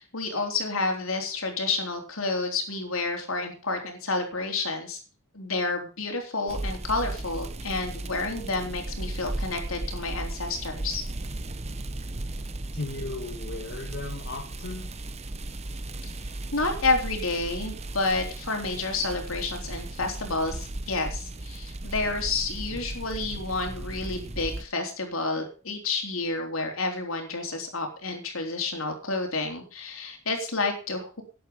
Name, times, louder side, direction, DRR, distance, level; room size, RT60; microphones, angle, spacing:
voice 1, 0.0-5.0 5.3-11.0 16.2-31.2, left 3 dB, 75° left, 3 dB, 3.6 m, -30 dB
sound 1, 6.5-24.6, right 1 dB, 30° right, 0.9 m, -36 dB
voice 2, 12.6-14.9, left 2 dB, 55° left, 2 dB, 1.8 m, -36 dB
11.5 x 10.0 x 5.4 m, 0.37 s
head